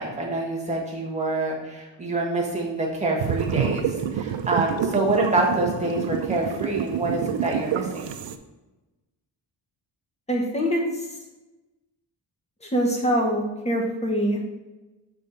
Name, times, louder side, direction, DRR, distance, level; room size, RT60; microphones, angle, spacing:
voice 1, 0.0-8.2, right 2 dB, 15° right, -3 dB, 1.4 m, -26 dB
sound 1, 3.2-8.4, right 8 dB, 80° right, 0.6 m, -28 dB
voice 2, 10.3-11.1 12.6-14.4, equal, 15° left, 0 dB, 1.1 m, -24 dB
6.5 x 3.5 x 5.4 m, 1.1 s
wide cardioid pair, 160°, 44 cm